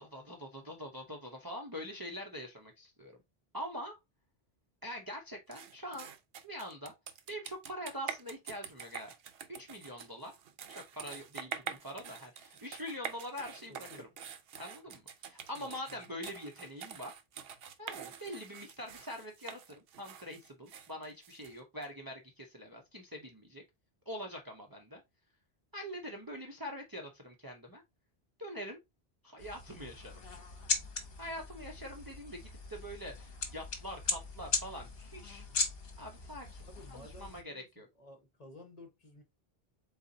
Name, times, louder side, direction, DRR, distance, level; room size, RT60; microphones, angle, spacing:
voice 1, 0.0-3.2 3.5-4.0 4.8-6.1 6.4-6.9 7.3-9.1 9.6-10.3 10.7-14.1 14.6-17.1 17.8-23.6 24.1-25.0 25.7-27.8 28.4-28.8 29.2-30.2 31.2-35.4 36.0-36.5 36.9-37.9, equal, 25° right, 0.7 m, -44 dB
sound 1, 5.5-21.9, right 7 dB, 75° right, 0.8 m, -46 dB
voice 2, 13.7-14.1 15.6-16.1 36.6-39.2, left 1 dB, 40° left, 1.1 m, -54 dB
sound 2, 29.4-37.4, left 4 dB, 70° left, 1.1 m, -39 dB
4.0 x 4.0 x 2.7 m
omnidirectional pair, 1.0 m